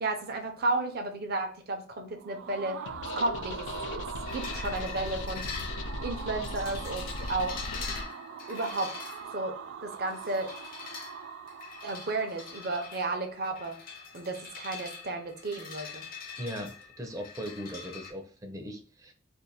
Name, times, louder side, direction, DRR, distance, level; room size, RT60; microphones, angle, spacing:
voice 1, 0.0-2.8 3.2-4.0 4.3-5.6 6.0-7.6 8.5-9.0 9.3-10.5 11.8-13.8 14.1-16.0, right 2 dB, 55° right, 4 dB, 0.7 m, -33 dB
sound 1, 2.1-13.0, right 7 dB, 85° right, 0.3 m, -43 dB
sound 2, 2.9-8.0, left 2 dB, 75° left, 0.4 m, -38 dB
sound 3, 4.3-18.1, left 4 dB, 50° left, 0.7 m, -44 dB
voice 2, 16.4-19.1, equal, 20° right, 4 dB, 0.5 m, -39 dB
2.6 x 2.5 x 4.0 m, 0.44 s
head